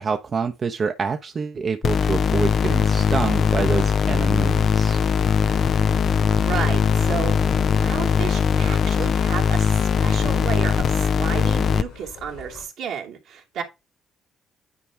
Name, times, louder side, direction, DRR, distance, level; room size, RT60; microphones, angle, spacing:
voice 1, 0.0-5.0, right 5 dB, 45° right, 1.0 m, -27 dB
sound 1, 1.8-11.8, left 7 dB, 60° left, 0.6 m, -20 dB
sound 2, 2.6-12.6, left 4 dB, 85° left, 4.1 m, -40 dB
voice 2, 6.5-7.3 7.8-13.6, right 8 dB, 75° right, 2.4 m, -32 dB
10.0 x 4.6 x 3.3 m
hypercardioid pair, 50°, 0 cm